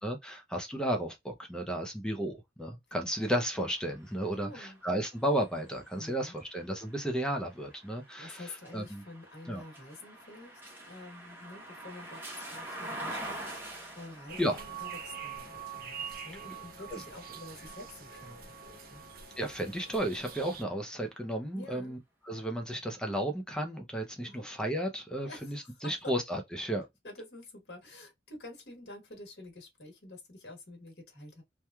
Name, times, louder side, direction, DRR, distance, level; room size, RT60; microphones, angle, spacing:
voice 1, 0.0-8.4 8.7-9.0 9.5-9.6 14.4-14.6 16.9-17.0 19.4-22.0 22.2-26.9, right 1 dB, 5° left, 0.5 m, -33 dB
sound 1, 3.1-19.1 19.6-20.9, right 1 dB, 10° right, 0.8 m, -47 dB
voice 2, 4.3-4.8 5.9-6.4 8.2-18.5 18.9-19.0 21.5-21.9 24.2-24.5 25.2-26.1 27.0-31.4, left 2 dB, 75° left, 1.2 m, -48 dB
sound 2, 14.3-20.6, right 7 dB, 55° right, 0.6 m, -44 dB
3.0 x 2.2 x 2.2 m
head